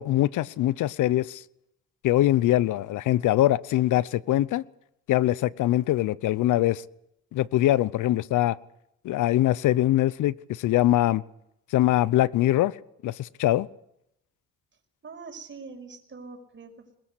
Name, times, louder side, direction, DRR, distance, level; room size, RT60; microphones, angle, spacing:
voice 1, 0.0-1.4 2.0-4.6 5.1-6.8 7.3-8.6 9.0-11.2 11.7-12.7 13.0-13.7, left 14 dB, 80° left, 0.8 m, -23 dB
voice 2, 15.0-17.0, right 4 dB, 40° right, 5.7 m, -43 dB
21.5 x 20.5 x 8.4 m
cardioid pair, 90°, 30 cm